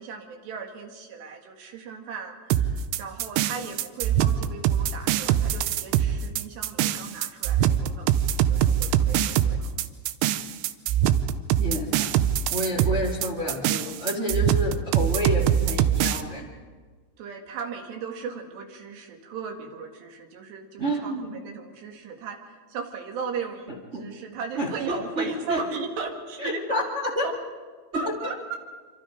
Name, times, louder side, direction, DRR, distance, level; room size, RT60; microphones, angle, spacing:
voice 1, 0.0-9.6 17.2-22.4 22.7-23.7 24.0-26.9 27.2-27.4 27.9-28.6, right 5 dB, 65° right, 3 dB, 3.8 m, -36 dB
sound 1, 2.5-16.2, right 10 dB, 80° right, 3.0 m, -23 dB
voice 2, 11.6-12.2 12.5-16.5 20.8-21.3 23.9-24.0 24.6-25.6 26.4-26.8 27.1-27.3 27.9-28.0, equal, 35° right, -1 dB, 1.0 m, -29 dB
27.0 x 25.5 x 5.1 m, 1.5 s
omnidirectional pair, 5.7 m